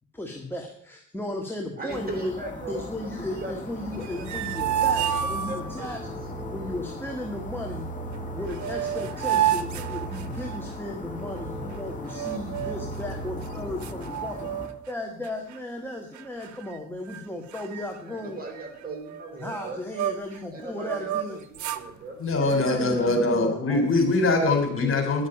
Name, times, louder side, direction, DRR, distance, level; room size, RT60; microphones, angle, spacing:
voice 1, 0.1-2.3 2.7-6.0 6.5-7.9 8.3-14.5 14.9-18.4 19.4-21.4 22.4-23.9, left 1 dB, 5° left, 2 dB, 1.7 m, -35 dB
voice 2, 1.8-3.6 4.0-6.1 18.1-19.8 20.5-22.2 22.7-23.2, right 2 dB, 30° right, 3 dB, 4.2 m, -39 dB
sound 1, 1.9-14.7, left 3 dB, 25° left, 2.7 m, -40 dB
sound 2, 3.9-14.0, right 3 dB, 10° right, 3.2 m, -39 dB
sound 3, 3.9-6.0 8.1-8.2 8.5-10.7 12.1-12.9 13.4-13.5 13.8-14.9 15.2-15.6 16.1-16.8 17.1-17.2 17.5-20.4 20.8-21.9, right 10 dB, 70° right, 0.8 m, -30 dB
voice 3, 22.2-25.3, left 2 dB, 45° left, 5 dB, 3.5 m, -22 dB
10.5 x 6.5 x 8.8 m, 0.65 s
cardioid pair, 90°, 30 cm